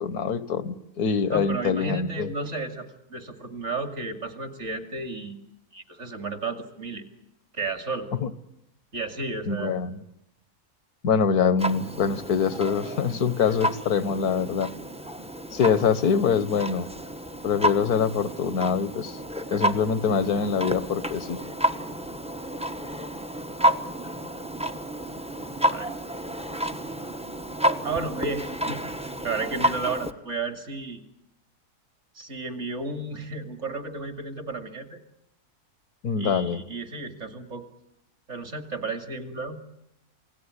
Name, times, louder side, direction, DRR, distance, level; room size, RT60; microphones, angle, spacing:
voice 1, 0.0-2.3 8.2-8.3 9.5-10.0 11.0-14.7 15.5-16.9 17.4-19.2 19.5-21.4 36.0-36.6, left 6 dB, 75° left, 14 dB, 1.7 m, -24 dB
voice 2, 1.3-5.4 5.7-7.0 7.5-8.1 8.9-9.8 25.7-25.9 27.8-28.8 29.2-31.0 32.2-35.0 36.2-37.6 38.3-39.6, right 3 dB, 45° right, 6 dB, 2.9 m, -33 dB
Clock, 11.6-30.1, equal, 5° right, 1.0 m, -30 dB
28.0 x 18.5 x 9.9 m, 0.83 s
omnidirectional pair, 1.7 m